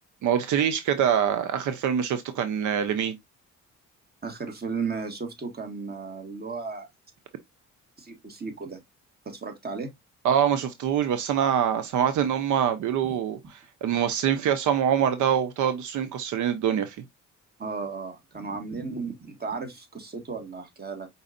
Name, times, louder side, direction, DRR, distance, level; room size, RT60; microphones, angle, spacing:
voice 1, 0.2-3.2 10.2-17.0, right 9 dB, 80° right, 0.7 m, -24 dB
voice 2, 4.2-6.9 8.0-8.8 9.2-9.9 13.1-13.2 17.6-21.1, right 4 dB, 30° right, 1.7 m, -34 dB
5.0 x 4.0 x 2.5 m
cardioid pair, 90°, 30 cm